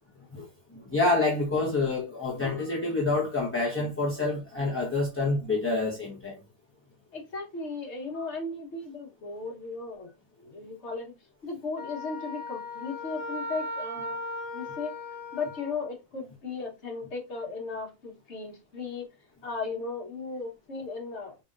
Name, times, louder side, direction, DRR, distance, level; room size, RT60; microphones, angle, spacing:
voice 1, 0.7-6.4 8.1-8.3, left 3 dB, 10° left, 0.9 m, -27 dB
voice 2, 7.1-10.1 10.4-11.1 11.4-14.2 14.5-14.9 15.3-19.1 19.4-21.3, left 4 dB, 55° left, 1.5 m, -36 dB
Wind instrument woodwind instrument, 11.8-15.9, left 2 dB, 35° right, 2.9 m, -37 dB
5.2 x 3.4 x 2.5 m
omnidirectional pair, 1.4 m